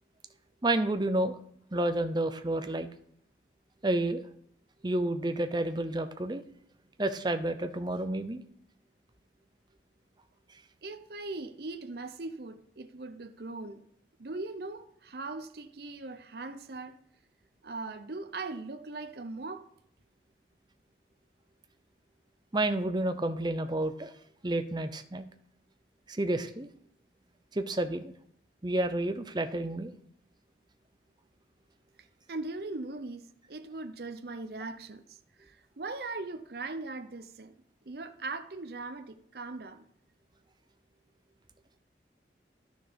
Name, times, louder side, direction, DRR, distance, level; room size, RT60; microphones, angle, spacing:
voice 1, 0.6-1.4 1.7-2.9 3.8-4.2 4.8-6.4 7.0-8.4 22.5-24.1 24.4-25.2 26.1-26.7 27.5-28.1 28.6-29.9, right 1 dB, 25° right, 0.7 m, -30 dB
voice 2, 10.8-13.8 14.2-17.0 17.6-19.7 32.0-37.5 37.9-39.9, right 3 dB, 60° right, 0.7 m, -40 dB
11.5 x 6.3 x 5.2 m
head